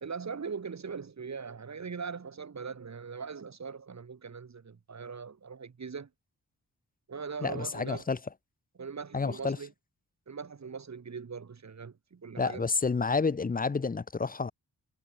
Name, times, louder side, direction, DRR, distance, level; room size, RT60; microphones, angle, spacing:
voice 1, 0.0-6.1 7.1-8.0 8.8-9.7 10.3-12.6, right 5 dB, 45° right, 1.4 m, -40 dB
voice 2, 7.4-8.2 9.1-9.6 12.4-14.5, left 4 dB, 25° left, 0.6 m, -29 dB
wide cardioid pair, 105°, 37 cm